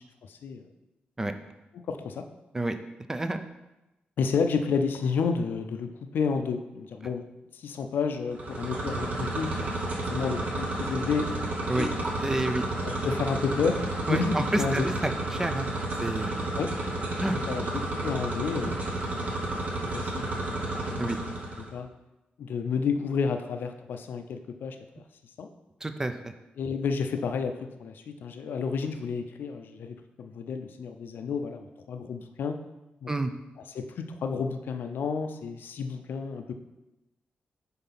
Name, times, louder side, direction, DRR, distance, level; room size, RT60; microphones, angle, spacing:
voice 1, 0.3-0.7 1.7-2.3 4.2-7.2 7.5-9.6 10.1-11.3 11.8-12.0 12.8-13.8 14.1-14.9 16.6-16.7 17.3-18.8 19.1-19.2 19.9-20.6 21.0-21.3 21.6-21.9 22.4-24.8 25.4-25.5 26.6-32.6 33.0-33.1 33.7-36.5, left 5 dB, 75° left, 7 dB, 0.5 m, -31 dB
voice 2, 3.1-3.5 11.7-11.9 12.2-12.6 14.1-15.7 16.0-16.5 17.2-17.4 21.0-21.2 25.8-26.3 33.1-33.3, right 2 dB, 15° right, 8 dB, 0.4 m, -29 dB
sound 1, 8.3-21.7, right 2 dB, 50° right, 1.0 m, -31 dB
5.5 x 3.9 x 5.8 m, 0.98 s
wide cardioid pair, 170°, 3 cm